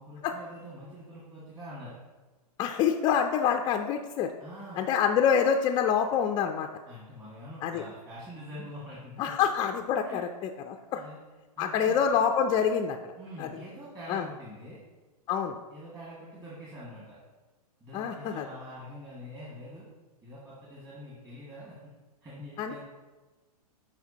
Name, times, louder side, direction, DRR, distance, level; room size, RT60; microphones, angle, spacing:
voice 1, 0.0-2.0 4.4-4.8 6.9-9.3 10.0-10.2 10.9-11.2 11.6-12.0 13.2-14.8 15.7-17.2 17.8-19.9 20.2-21.9 22.2-22.8, equal, 20° right, -8 dB, 1.8 m, -45 dB
voice 2, 2.6-4.3 4.8-6.7 7.6-7.8 9.2-10.3 10.7-11.0 11.6-13.5 14.1-14.3 15.3-15.6 17.9-18.5 22.6-22.8, left 7 dB, 20° left, 4 dB, 0.3 m, -26 dB
9.3 x 4.9 x 2.8 m, 1.2 s
hypercardioid pair, 130°, 20 cm